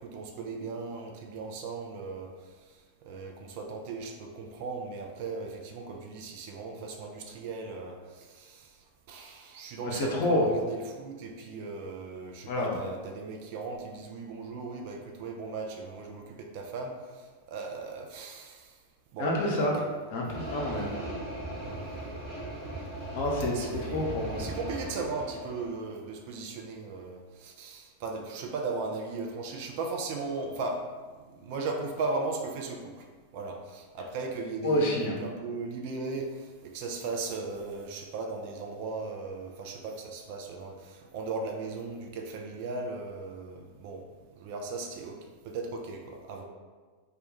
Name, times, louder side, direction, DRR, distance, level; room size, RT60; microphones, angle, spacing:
voice 1, 0.0-18.8 19.1-19.3 19.7-19.9 20.7-20.9 21.6-21.9 23.5-30.8 31.3-33.1 33.3-44.0 44.3-45.2 45.4-46.4, right 3 dB, 45° right, 2 dB, 0.3 m, -37 dB
voice 2, 9.9-10.4 12.5-12.7 19.2-19.8 20.1-20.9 23.1-24.4 34.6-35.1, left 1 dB, 50° left, -2 dB, 0.6 m, -28 dB
sound 1, 20.3-25.7, right 1 dB, 30° right, 1.1 m, -38 dB
2.2 x 2.2 x 2.9 m, 1.4 s
figure-of-eight pair, 90°, 0 cm